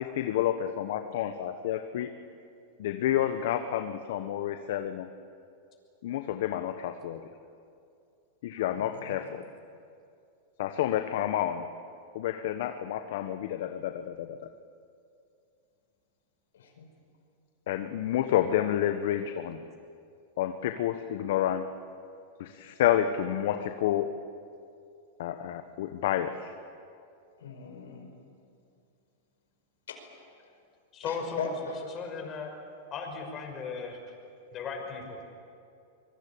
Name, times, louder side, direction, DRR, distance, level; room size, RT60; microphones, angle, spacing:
voice 1, 0.0-2.1 2.8-5.1 6.0-7.3 8.4-9.5 10.6-11.7 12.1-14.4 17.7-19.6 20.4-21.7 22.4-24.1 25.2-26.5, left 11 dB, 70° left, 8 dB, 1.2 m, -29 dB
voice 2, 8.7-9.2 16.5-16.9 27.4-28.1 29.9-30.5 31.0-31.8, left 5 dB, 90° left, 4 dB, 5.1 m, -39 dB
voice 3, 30.9-31.5 31.9-32.5 32.9-34.0 34.5-35.2, left 5 dB, 30° left, 3 dB, 6.0 m, -36 dB
24.5 x 22.5 x 8.7 m, 2.5 s
hypercardioid pair, 130°, 0 cm